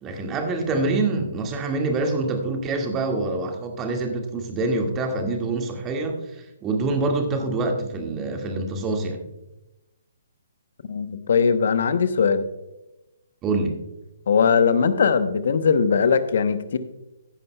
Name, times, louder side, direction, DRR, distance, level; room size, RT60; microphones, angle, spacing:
voice 1, 0.0-9.2 13.4-13.8, right 3 dB, 20° right, 3 dB, 1.9 m, -26 dB
voice 2, 10.8-12.4 14.3-16.8, left 6 dB, 55° left, 12 dB, 0.9 m, -20 dB
15.0 x 11.0 x 2.3 m, 0.95 s
figure-of-eight pair, 130°, 0 cm